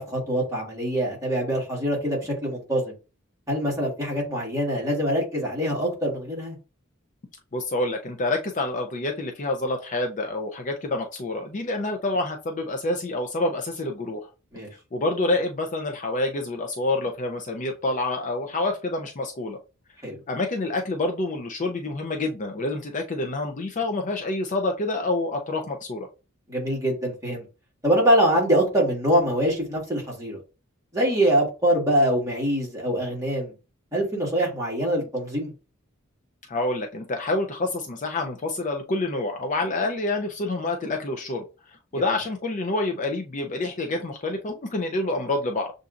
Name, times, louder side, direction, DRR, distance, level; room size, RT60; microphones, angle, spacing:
voice 1, 0.0-2.9 3.5-6.6 14.5-14.7 20.0-20.2 26.5-27.4 27.8-30.4 30.9-33.5 33.9-35.5 41.9-42.0, right 1 dB, 15° right, -3 dB, 1.8 m, -24 dB
voice 2, 7.5-14.3 14.9-19.6 20.3-26.1 36.5-41.4 41.9-45.7, left 2 dB, 35° left, 3 dB, 0.5 m, -27 dB
6.8 x 2.6 x 2.5 m, 0.32 s
head